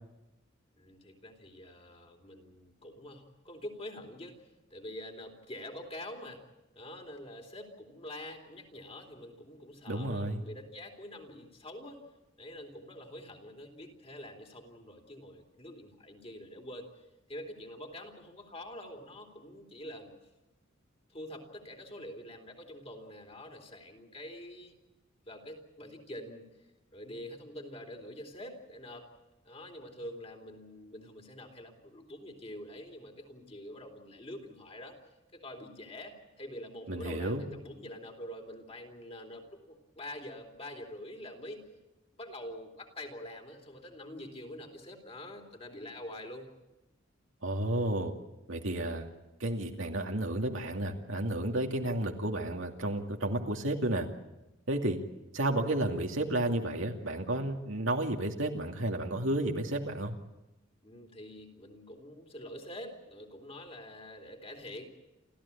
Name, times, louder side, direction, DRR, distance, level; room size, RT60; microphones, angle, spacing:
voice 1, 0.7-6.4 6.8-12.0 12.4-20.1 21.1-24.7 25.2-26.5 26.9-29.1 29.4-35.0 35.3-41.6 42.1-46.5 60.8-64.9, left 1 dB, 30° left, 3 dB, 3.6 m, -46 dB
voice 2, 9.9-10.4 36.9-37.5 47.4-48.1 48.5-49.1 49.4-54.1 54.7-55.0 55.3-60.2, right 1 dB, 80° right, 3 dB, 2.5 m, -32 dB
29.0 x 14.5 x 8.7 m, 0.99 s
head